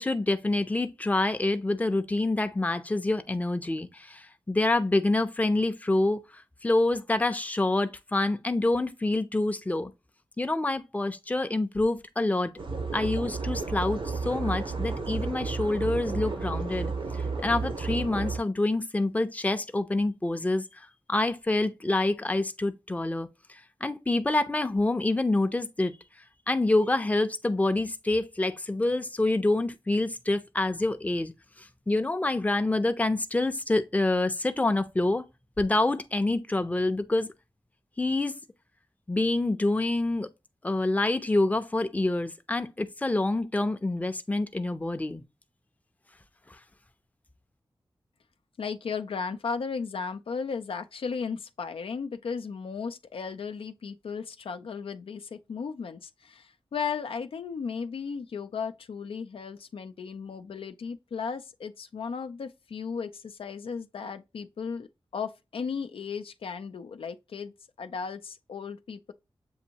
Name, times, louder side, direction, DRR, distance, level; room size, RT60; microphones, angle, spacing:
voice 1, 0.0-9.9 10.4-12.5 12.9-16.9 17.4-23.3 23.8-25.9 26.5-31.3 31.6-35.2 35.6-37.3 38.0-38.3 39.1-40.3 40.6-45.2, left 2 dB, 15° left, 0.5 m, -27 dB
sound 1, 12.6-18.4, right 4 dB, 70° right, 0.8 m, -32 dB
voice 2, 48.6-67.5 67.8-69.1, left 5 dB, 90° left, 0.4 m, -35 dB
7.1 x 2.6 x 2.8 m
wide cardioid pair, 75°, 9 cm